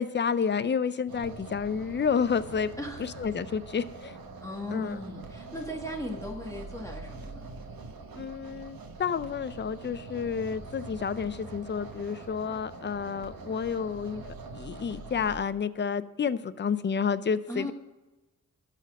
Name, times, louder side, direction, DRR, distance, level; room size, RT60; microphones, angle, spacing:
voice 1, 0.0-2.7 3.0-4.2 4.7-5.0 8.2-14.2 14.5-17.7, left 6 dB, 35° left, 15 dB, 0.4 m, -30 dB
sound 1, 1.1-15.4, right 3 dB, 80° right, 1.1 m, -44 dB
voice 2, 2.8-3.2 4.4-7.5 17.5-17.7, left 1 dB, 10° left, 1 dB, 1.3 m, -37 dB
12.5 x 4.2 x 7.5 m, 1.1 s
wide cardioid pair, 90°, 35 cm